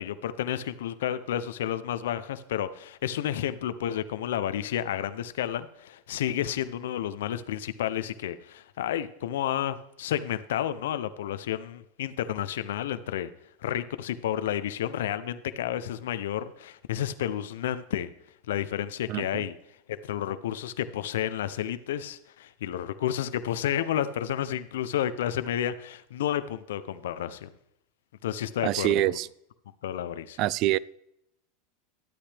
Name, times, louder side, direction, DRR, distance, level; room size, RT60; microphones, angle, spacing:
voice 1, 0.0-13.3 13.6-18.1 18.5-19.5 20.0-27.5 28.2-28.9 29.8-30.4, left 11 dB, 85° left, 12 dB, 0.5 m, -31 dB
voice 2, 19.1-19.4 28.6-29.3 30.4-30.8, right 15 dB, 50° right, 22 dB, 0.3 m, -25 dB
12.0 x 8.6 x 3.4 m, 0.79 s
supercardioid pair, 125°, 0 cm